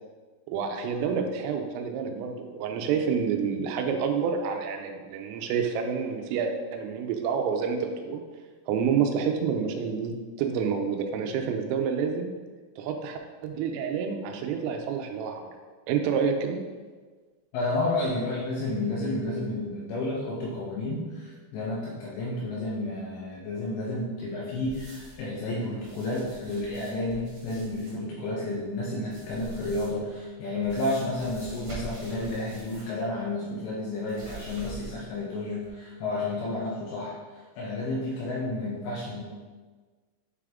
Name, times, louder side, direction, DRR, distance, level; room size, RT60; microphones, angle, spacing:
voice 1, 0.5-8.2 8.7-12.3 12.8-15.5 15.9-16.6, right 6 dB, 85° right, 4 dB, 3.2 m, -28 dB
voice 2, 17.5-37.2 37.6-39.2, left 2 dB, 80° left, -4 dB, 2.6 m, -31 dB
sound 1, 24.6-25.3 25.7-28.0 29.0-30.1 30.6-33.0 33.3-33.4 34.1-35.2 35.6-35.7, right 3 dB, 50° right, 1.8 m, -45 dB
9.1 x 3.6 x 3.5 m, 1.4 s
omnidirectional pair, 5.8 m